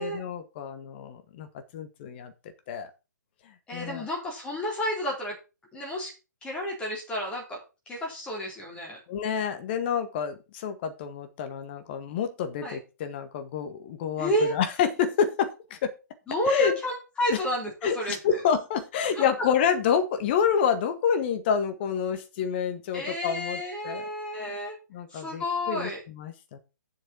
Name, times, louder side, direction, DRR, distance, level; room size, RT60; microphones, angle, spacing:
voice 1, 0.0-1.5 1.7-2.3 2.7-2.9 3.7-4.1 9.1-15.9 16.5-16.7 17.3-17.4 17.8-24.0 24.4-24.5 24.9-26.6, left 7 dB, 35° left, 8 dB, 1.7 m, -28 dB
voice 2, 3.7-5.3 5.7-6.1 6.4-7.6 7.9-9.0 12.6-12.8 14.2-14.5 16.3-18.2 19.1-19.2 22.9-24.8 25.1-26.0, equal, 10° left, -2 dB, 4.1 m, -30 dB
7.5 x 6.5 x 5.9 m, 0.30 s
figure-of-eight pair, 130°, 10 cm